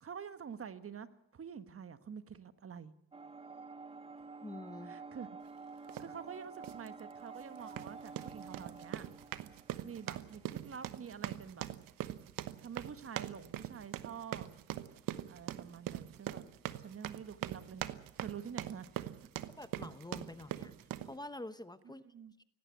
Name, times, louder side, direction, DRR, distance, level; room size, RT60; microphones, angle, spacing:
voice 1, 0.0-2.9 4.8-5.3 6.0-9.0 9.8-11.7 12.6-14.5 15.3-16.5 16.8-17.8 18.1-18.9 21.8-22.4, right 7 dB, 40° right, 12 dB, 1.4 m, -47 dB
sound 1, 3.1-11.1, right 4 dB, 15° right, 0.9 m, -50 dB
voice 2, 4.4-4.9 19.6-20.7 21.0-22.0, left 2 dB, 10° left, 12 dB, 1.0 m, -46 dB
sound 2, 5.9-6.1 6.6-6.9 7.6-21.1, right 13 dB, 90° right, 1.1 m, -42 dB
18.0 x 17.0 x 9.5 m, 0.80 s
cardioid pair, 95°, 33 cm